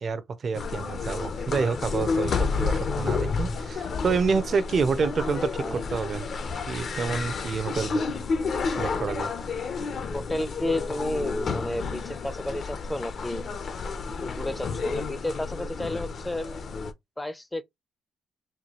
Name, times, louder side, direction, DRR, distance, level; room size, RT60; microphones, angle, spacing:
voice 1, 0.0-6.2 6.7-8.0 8.7-9.3, right 5 dB, 45° right, 0.6 m, -28 dB
sound 1, 0.5-16.9, left 4 dB, 50° left, 0.7 m, -30 dB
voice 2, 10.1-13.4 14.2-16.7 17.2-17.6, left 1 dB, 10° left, 0.5 m, -32 dB
4.4 x 2.2 x 3.0 m
cardioid pair, 90°, 0 cm